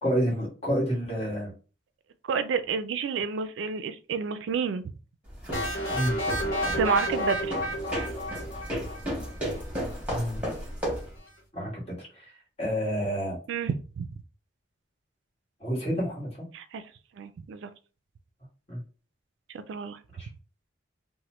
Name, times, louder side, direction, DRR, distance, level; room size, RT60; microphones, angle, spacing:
voice 1, 0.0-1.5 5.9-6.1 10.1-10.5 11.5-12.3 12.6-13.4 15.6-16.3 18.7-18.8 20.2-20.3, equal, 35° left, 1.5 m, -29 dB
voice 2, 2.2-4.9 6.8-7.6 13.5-14.1 16.5-16.8 17.2-17.7 19.5-20.0, right 6 dB, 70° right, 0.3 m, -30 dB
sound 1, 5.3-11.2, equal, 5° right, 1.2 m, -34 dB
sound 2, 5.5-9.3, equal, 50° left, 1.5 m, -31 dB
2.9 x 2.1 x 3.0 m
head